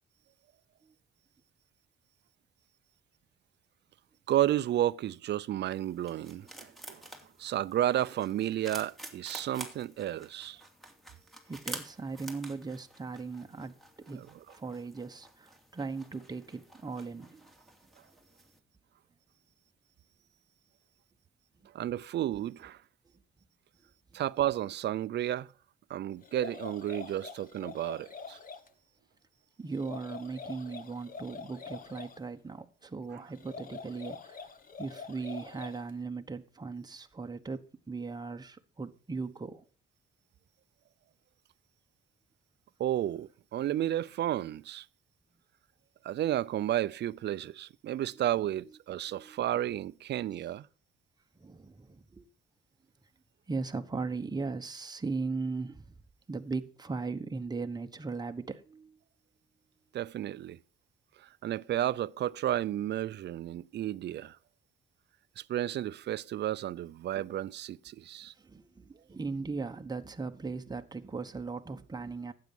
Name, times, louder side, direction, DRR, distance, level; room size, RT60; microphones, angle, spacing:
voice 1, 4.3-7.0 7.4-10.6 14.1-14.3 21.7-22.8 24.1-25.5 25.9-28.4 42.8-44.9 46.0-50.7 59.9-60.6 61.4-64.4 65.4-68.3, right 12 dB, 60° right, 0.5 m, -32 dB
sound 1, 5.7-18.6, right 1 dB, ahead, 2.5 m, -49 dB
voice 2, 11.5-14.2 14.5-17.5 29.6-34.5 34.8-39.6 49.1-49.4 51.4-52.3 53.5-55.9 56.3-59.0 68.4-72.3, right 4 dB, 20° right, 1.1 m, -38 dB
sound 2, 26.2-28.7 29.7-32.2 33.3-35.9, left 5 dB, 45° left, 1.5 m, -45 dB
12.0 x 8.7 x 5.3 m
cardioid pair, 90°, 20 cm